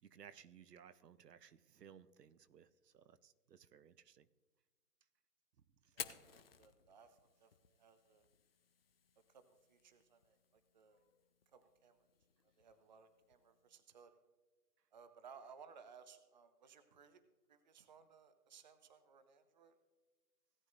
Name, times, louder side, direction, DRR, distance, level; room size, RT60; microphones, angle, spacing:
voice 1, 0.0-4.3, right 8 dB, 85° right, 15 dB, 0.8 m, -60 dB
Fire, 5.8-13.8, left 7 dB, 40° left, 0.5 m, -56 dB
voice 2, 6.0-7.5 7.8-8.3 9.3-9.4 9.7-11.0 11.5-12.0 12.6-14.2 14.9-17.2 17.5-19.8, right 6 dB, 30° right, 11 dB, 0.6 m, -61 dB
17.5 x 9.2 x 2.5 m, 1.3 s
hypercardioid pair, 155°, 47 cm